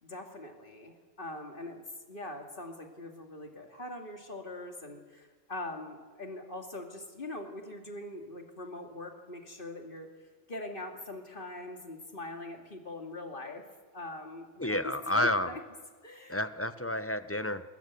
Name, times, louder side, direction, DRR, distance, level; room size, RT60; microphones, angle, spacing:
voice 1, 0.0-1.8 2.1-10.1 10.5-13.6 13.9-15.6 16.0-16.4, left 2 dB, 45° left, 3 dB, 2.6 m, -42 dB
voice 2, 14.6-15.5 16.3-17.6, left 1 dB, 15° left, 12 dB, 0.5 m, -30 dB
21.0 x 20.5 x 8.4 m, 1.5 s
omnidirectional pair, 1.3 m